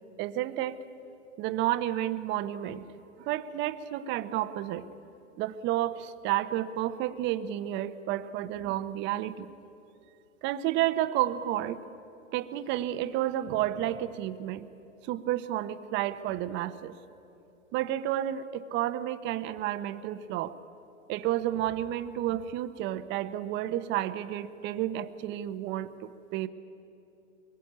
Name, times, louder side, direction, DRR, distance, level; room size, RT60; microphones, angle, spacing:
voice 1, 0.2-0.8 1.4-2.8 3.2-4.9 5.4-9.5 10.4-11.8 12.3-14.7 15.0-16.9 17.7-20.5 21.1-26.5, right 13 dB, 30° right, 11 dB, 1.0 m, -31 dB
23.5 x 21.5 x 9.5 m, 2.8 s
hypercardioid pair, 130°, 39 cm